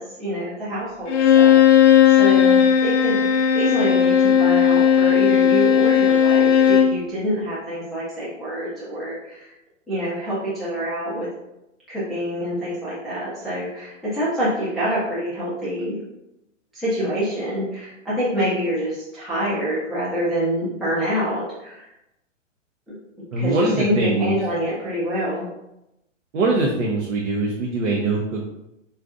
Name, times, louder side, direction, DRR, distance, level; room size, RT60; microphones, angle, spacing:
voice 1, 0.0-9.5 9.9-11.3 11.9-16.0 16.7-21.9 22.9-23.0 23.4-25.5, equal, ahead, -11 dB, 0.4 m, -26 dB
Bowed string instrument, 1.1-7.0, left 8 dB, 60° left, 0.6 m, -15 dB
voice 2, 23.3-24.3 26.3-28.5, right 3 dB, 80° right, -2 dB, 0.7 m, -22 dB
3.9 x 2.4 x 2.4 m, 0.88 s
hypercardioid pair, 130°, 38 cm